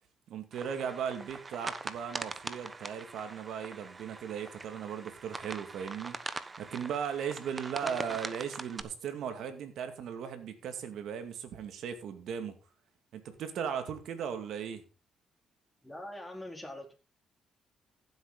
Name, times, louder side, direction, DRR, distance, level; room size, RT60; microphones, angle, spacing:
voice 1, 0.3-6.2 6.6-12.6 13.1-14.8, right 7 dB, 75° right, 8 dB, 2.3 m, -37 dB
sound 1, 0.5-8.8, right 3 dB, 25° right, 1.1 m, -42 dB
voice 2, 7.8-8.5 8.7-8.8 15.8-16.9, left 1 dB, 5° left, 1 dB, 4.2 m, -44 dB
15.0 x 8.1 x 4.0 m, 0.32 s
cardioid pair, 90°, 0 cm